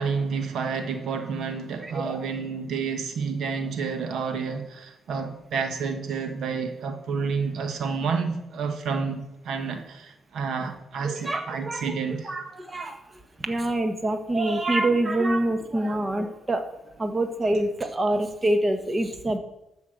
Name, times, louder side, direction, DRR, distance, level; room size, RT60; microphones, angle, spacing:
voice 1, 0.0-12.4, right 5 dB, 70° right, 1.4 m, -30 dB
voice 2, 1.8-2.2 11.0-11.9 12.2-13.0 13.4-16.6 17.0-19.4, right 1 dB, 20° right, 1.5 m, -26 dB
12.5 x 5.7 x 7.9 m
cardioid pair, 90°, 0 cm